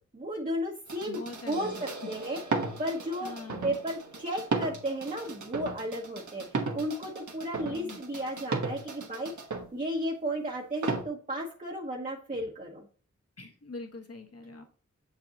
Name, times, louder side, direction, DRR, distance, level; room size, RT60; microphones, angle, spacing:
voice 1, 0.1-2.4 2.8-3.3 3.6-9.3 9.7-12.9, equal, 30° right, -1 dB, 1.0 m, -34 dB
sound 1, 0.9-9.7 10.8-11.0, right 3 dB, 80° right, 1.3 m, -35 dB
voice 2, 1.1-1.8 3.2-3.8 7.6-8.0 13.4-14.6, left 3 dB, 55° left, 3 dB, 1.3 m, -43 dB
7.4 x 4.8 x 2.9 m, 0.42 s
wide cardioid pair, 90°, 29 cm